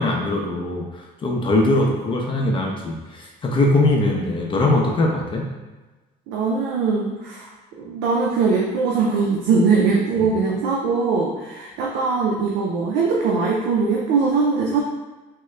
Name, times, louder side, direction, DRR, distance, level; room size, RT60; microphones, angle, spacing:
voice 1, 0.0-5.5, left 2 dB, 30° left, -1 dB, 0.6 m, -21 dB
voice 2, 6.3-7.4 7.8-14.8, right 4 dB, 90° right, -2 dB, 0.5 m, -21 dB
3.6 x 2.1 x 3.2 m, 1.2 s
cardioid pair, 110°, 17 cm